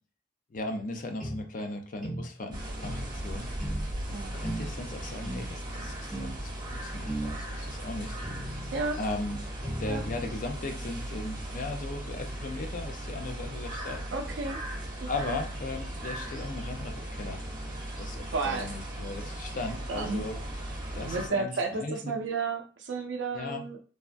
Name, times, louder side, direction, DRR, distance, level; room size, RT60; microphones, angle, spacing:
voice 1, 0.5-3.5 4.3-8.2 9.0-14.0 15.1-20.4 20.9-22.1 23.3-23.6, left 2 dB, 45° left, 4 dB, 0.5 m, -37 dB
sound 1, 1.2-1.4 2.0-2.3 2.8-3.1 3.6-3.9 4.4-4.7 5.2-5.5 6.1-6.4 7.1-7.4 8.2-8.9 9.6-10.3, right 1 dB, ahead, 1.0 m, -36 dB
sound 2, 2.5-21.3, right 1 dB, 25° right, 1.0 m, -37 dB
voice 2, 14.1-14.6 15.0-15.4 18.3-18.7 19.5-20.2 20.9-23.8, right 4 dB, 80° right, 3 dB, 0.4 m, -33 dB
3.4 x 2.1 x 2.5 m, 0.37 s
head